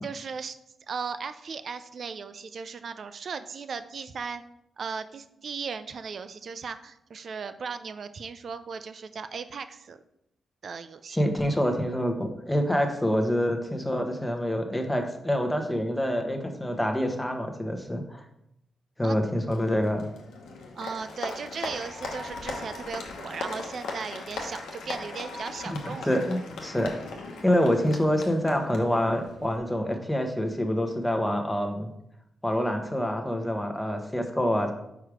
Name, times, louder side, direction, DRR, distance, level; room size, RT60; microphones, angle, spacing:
voice 1, 0.0-0.6 0.9-4.4 4.8-10.0 10.6-11.2 19.0-19.2 20.8-26.2, right 5 dB, 60° right, 11 dB, 0.4 m, -37 dB
voice 2, 11.1-18.2 19.0-20.1 25.7-26.9 27.4-31.9 32.4-34.7, equal, 10° left, 4 dB, 1.1 m, -26 dB
Applause, 19.5-29.6, left 3 dB, 85° left, 1.0 m, -39 dB
4.9 x 4.6 x 4.9 m, 0.82 s
supercardioid pair, 55°, 0 cm